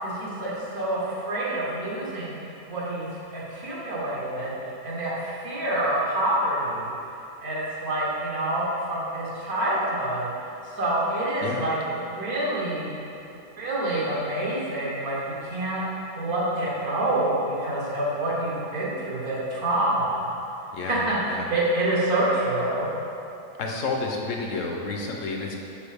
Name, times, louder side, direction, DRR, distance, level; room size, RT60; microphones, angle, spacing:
voice 1, 0.0-6.9 7.4-10.3 10.6-12.9 13.6-20.3 20.8-22.9, right 1 dB, 85° right, -6 dB, 1.8 m, -27 dB
voice 2, 23.6-25.6, left 3 dB, 65° left, 1 dB, 0.9 m, -30 dB
6.8 x 4.6 x 3.4 m, 2.9 s
omnidirectional pair, 1.5 m